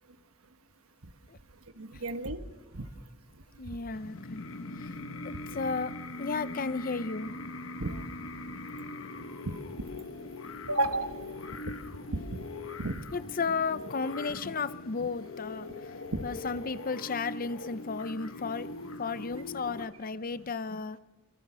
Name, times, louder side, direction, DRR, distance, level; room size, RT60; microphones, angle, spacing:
voice 1, 1.8-2.4 2.7-2.9 5.3-5.4 7.8-8.0 9.5-9.6 10.7-11.2 11.7-11.8 12.1-12.5 12.8-13.0 16.1-16.2, right 2 dB, 80° right, 9 dB, 1.3 m, -32 dB
voice 2, 3.6-4.4 4.8-4.9 5.2-5.9 6.2-7.3 13.1-16.0 16.2-18.7 19.0-21.0, left 4 dB, 40° left, 14 dB, 0.6 m, -34 dB
sound 1, 3.9-19.8, left 2 dB, 65° left, 1.2 m, -41 dB
26.0 x 22.0 x 6.3 m, 1.2 s
head